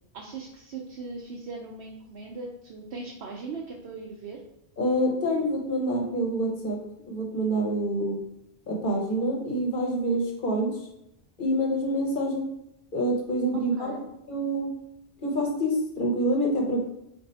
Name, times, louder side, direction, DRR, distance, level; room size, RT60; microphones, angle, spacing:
voice 1, 0.1-4.4 13.5-14.1, right 4 dB, 70° right, -1 dB, 0.9 m, -39 dB
voice 2, 4.8-6.8 7.1-8.2 8.7-10.7 11.4-12.5 12.9-13.9 14.3-14.7 15.2-16.8, right 1 dB, 55° left, 0 dB, 1.1 m, -26 dB
4.2 x 2.6 x 4.1 m, 0.80 s
omnidirectional pair, 1.1 m